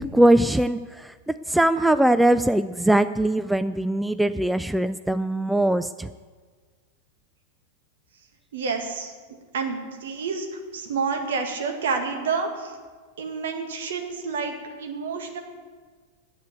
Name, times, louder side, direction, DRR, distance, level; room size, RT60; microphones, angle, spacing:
voice 1, 0.0-6.1, right 1 dB, 5° right, 12 dB, 0.3 m, -21 dB
voice 2, 8.5-9.1 9.5-10.5 10.7-12.8 13.2-15.4, right 5 dB, 60° right, 4 dB, 1.9 m, -29 dB
10.0 x 8.3 x 9.4 m, 1.5 s
figure-of-eight pair, 90°, 0 cm